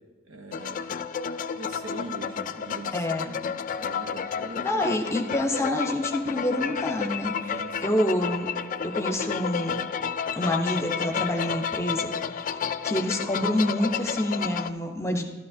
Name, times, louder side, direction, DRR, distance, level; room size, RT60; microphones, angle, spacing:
voice 1, 0.2-0.9 1.5-4.8 7.5-8.0, right 2 dB, 70° right, 6 dB, 1.0 m, -42 dB
sound 1, 0.5-14.7, left 7 dB, 40° left, 0.3 m, -31 dB
voice 2, 2.9-3.3 4.3-4.4 4.6-8.5 8.8-9.8 10.4-12.1 12.4-12.6 12.8-15.3, left 1 dB, 15° left, 3 dB, 0.9 m, -27 dB
12.5 x 12.5 x 2.8 m, 1.3 s
head